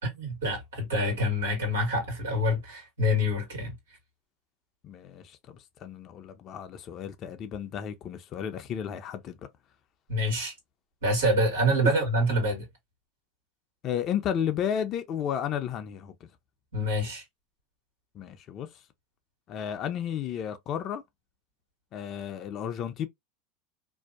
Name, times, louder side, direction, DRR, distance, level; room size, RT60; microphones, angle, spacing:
voice 1, 0.0-3.7 10.1-10.5 11.0-12.7 16.7-17.2, equal, 90° right, 1.5 m, -26 dB
voice 2, 4.8-9.4 13.8-16.3 18.1-18.7 19.5-21.0 21.9-23.1, left 9 dB, 45° left, 0.5 m, -33 dB
2.6 x 2.2 x 2.3 m
hypercardioid pair, 100°, 0 cm